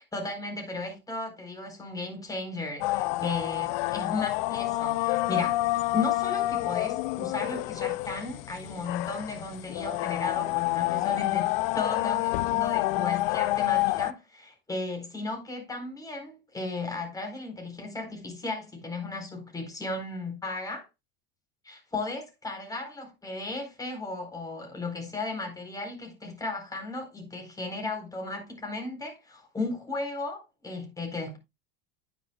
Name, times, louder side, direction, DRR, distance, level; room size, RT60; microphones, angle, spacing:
voice 1, 0.1-5.6 5.9-20.9 21.6-31.4, left 3 dB, 10° left, 4.3 m, -35 dB
sound 1, 2.8-14.1, left 18 dB, 70° left, 0.6 m, -28 dB
10.0 x 9.8 x 2.4 m
supercardioid pair, 135°, 30 cm